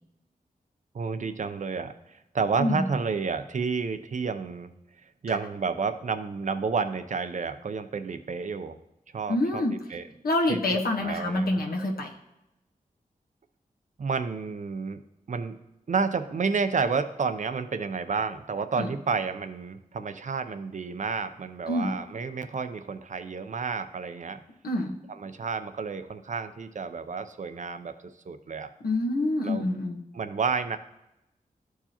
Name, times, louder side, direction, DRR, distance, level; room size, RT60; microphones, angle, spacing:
voice 1, 0.9-4.7 5.2-8.8 9.1-9.6 9.9-10.0 10.5-11.6 14.0-15.0 15.3-15.6 15.9-24.4 25.2-27.9 28.3-28.7 29.4-29.6 30.1-30.8, right 5 dB, 55° right, 9 dB, 0.6 m, -30 dB
voice 2, 9.3-9.7 10.2-12.1 18.8-18.9 21.7-22.0 24.6-25.0 28.8-30.0, left 1 dB, 85° left, -1 dB, 1.2 m, -26 dB
13.0 x 4.7 x 2.9 m, 0.90 s
wide cardioid pair, 80°, 15 cm